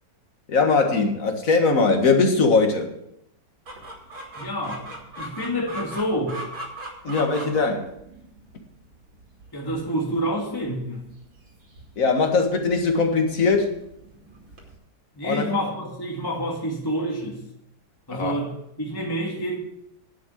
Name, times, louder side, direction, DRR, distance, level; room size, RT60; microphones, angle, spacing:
voice 1, 0.5-2.9 7.0-7.9 12.0-13.7 15.2-15.5 18.1-18.4, left 4 dB, 45° left, 4 dB, 2.0 m, -20 dB
Chicken rooster, 3.7-14.8, right 1 dB, 85° right, 3.3 m, -41 dB
voice 2, 4.4-6.4 9.5-11.0 15.1-17.4 18.1-18.5 18.8-19.6, equal, 10° left, -2 dB, 2.1 m, -28 dB
10.5 x 7.6 x 7.9 m, 0.79 s
omnidirectional pair, 2.1 m